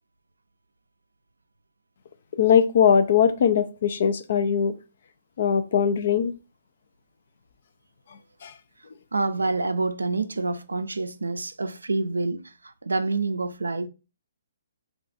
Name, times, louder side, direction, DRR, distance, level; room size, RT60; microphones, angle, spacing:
voice 1, 2.3-4.7 5.4-6.3 8.4-8.5, left 7 dB, 60° left, 0.4 m, -20 dB
voice 2, 9.1-13.9, right 3 dB, 90° right, 0.4 m, -27 dB
2.4 x 2.3 x 4.0 m
hypercardioid pair, 135°, 0 cm